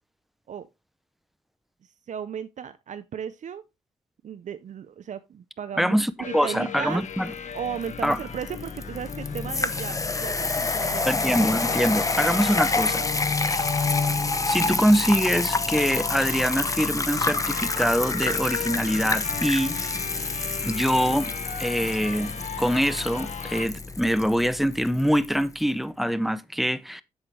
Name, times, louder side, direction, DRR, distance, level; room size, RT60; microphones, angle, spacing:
voice 1, 1.8-3.6 4.2-7.0 7.5-11.1, right 8 dB, 65° right, 0.6 m, -35 dB
voice 2, 5.8-7.3 8.0-8.2 11.1-13.1 14.5-19.7 20.6-21.3 21.6-27.0, equal, ahead, 0.6 m, -24 dB
sound 1, 6.2-23.7, left 6 dB, 65° left, 1.3 m, -35 dB
sound 2, 7.3-25.3, left 3 dB, 25° left, 0.9 m, -28 dB
8.2 x 8.0 x 3.2 m
wide cardioid pair, 120°, 13 cm